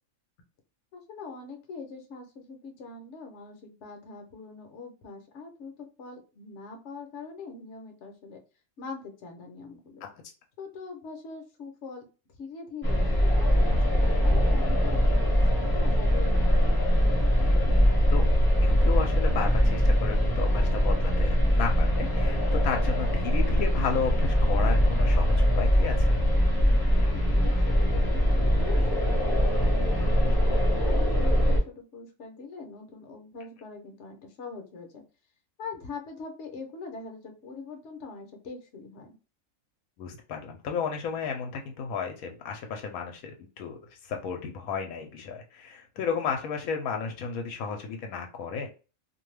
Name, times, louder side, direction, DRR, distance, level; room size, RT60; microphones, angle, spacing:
voice 1, 0.9-8.4 8.8-10.0 10.6-12.1 12.4-16.6 27.0-35.0 35.6-39.1, left 4 dB, 60° left, 3 dB, 0.9 m, -43 dB
sound 1, 12.8-31.6, equal, 20° left, 0.7 m, -22 dB
voice 2, 17.4-18.2 18.6-26.2 40.0-48.7, left 6 dB, 85° left, 4 dB, 1.0 m, -33 dB
2.6 x 2.2 x 3.1 m, 0.33 s
omnidirectional pair, 1.5 m